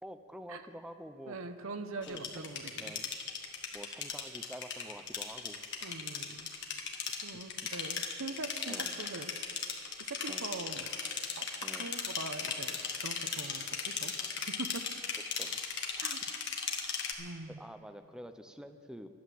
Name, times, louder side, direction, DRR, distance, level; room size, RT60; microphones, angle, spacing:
voice 1, 0.0-1.4 2.1-2.4 2.8-3.1 3.7-6.0 8.7-9.1 10.3-10.5 11.6-12.0 15.3-16.0 17.5-19.1, equal, 5° right, 8 dB, 0.5 m, -48 dB
voice 2, 1.3-2.9 5.8-6.5 7.2-9.3 10.1-10.9 11.4-11.5 11.7-14.1 14.5-14.8 16.0-16.2 17.2-17.6, right 3 dB, 65° right, 8 dB, 0.8 m, -42 dB
sound 1, 2.0-17.1, left 6 dB, 50° left, 1.5 m, -37 dB
12.5 x 11.5 x 7.6 m, 2.4 s
head